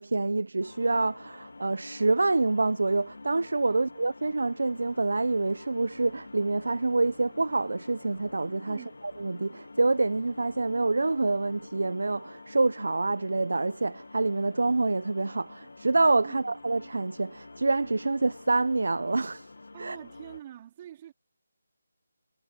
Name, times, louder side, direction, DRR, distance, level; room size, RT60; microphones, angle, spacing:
voice 1, 0.0-8.8 9.2-19.5 19.8-20.0, right 3 dB, 80° right, 0.4 m, -27 dB
sound 1, 0.6-20.4, left 3 dB, 75° left, 1.1 m, -48 dB
voice 2, 19.7-21.1, right 11 dB, 20° right, 3.1 m, -45 dB
figure-of-eight pair, 175°, 0 cm